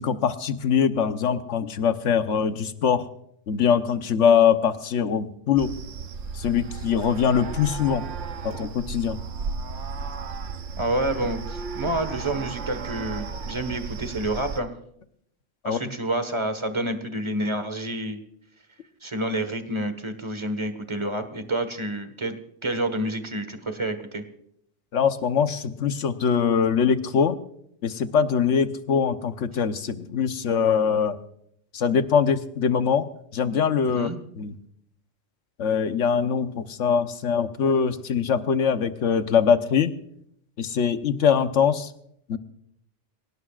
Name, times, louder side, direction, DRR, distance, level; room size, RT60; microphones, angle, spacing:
voice 1, 0.0-3.1 3.5-5.7 6.3-8.0 8.4-9.2 15.6-15.8 24.9-27.4 27.8-31.2 31.7-33.1 33.3-34.1 34.4-34.6 35.6-39.9 40.6-41.9 42.3-42.4, left 7 dB, 80° left, 10 dB, 1.3 m, -22 dB
sound 1, 5.6-14.6, right 5 dB, 80° right, 1.2 m, -34 dB
voice 2, 10.8-14.7 15.6-18.2 19.0-22.3 22.6-24.2 33.9-34.2, right 1 dB, 25° right, 8 dB, 1.5 m, -28 dB
26.5 x 17.5 x 2.5 m, 0.72 s
omnidirectional pair, 1.2 m